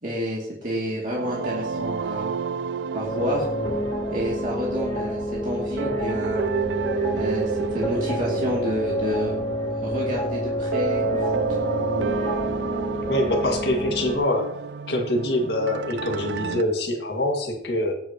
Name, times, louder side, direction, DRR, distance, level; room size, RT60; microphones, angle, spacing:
voice 1, 0.0-2.4 2.9-3.5 4.1-6.5 7.1-9.4 9.8-11.3, equal, 45° right, -4 dB, 2.4 m, -29 dB
sound 1, 1.1-16.6, right 6 dB, 75° right, 0.4 m, -31 dB
sound 2, 3.0-14.2, equal, 20° left, 3.6 m, -28 dB
voice 2, 13.1-14.6 14.9-17.9, left 1 dB, 65° left, 2 dB, 1.9 m, -24 dB
20.5 x 8.7 x 2.9 m, 0.81 s
head